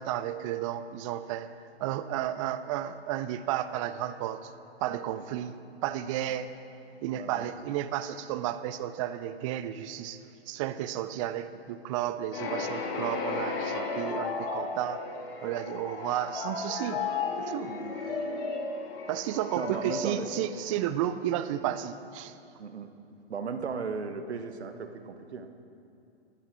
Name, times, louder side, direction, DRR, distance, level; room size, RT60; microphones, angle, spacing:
voice 1, 0.0-4.5 4.8-6.5 7.0-15.0 15.4-17.0 17.4-17.7 19.1-22.3, right 11 dB, 30° right, 12 dB, 0.5 m, -33 dB
voice 2, 7.1-7.5 17.7-18.0 19.5-20.3 22.6-22.9 23.3-25.5, right 5 dB, 80° right, 8 dB, 1.0 m, -36 dB
sound 1, 12.3-21.1, left 4 dB, 60° left, 1.8 m, -34 dB
13.0 x 11.5 x 4.3 m, 2.6 s
hypercardioid pair, 120°, 32 cm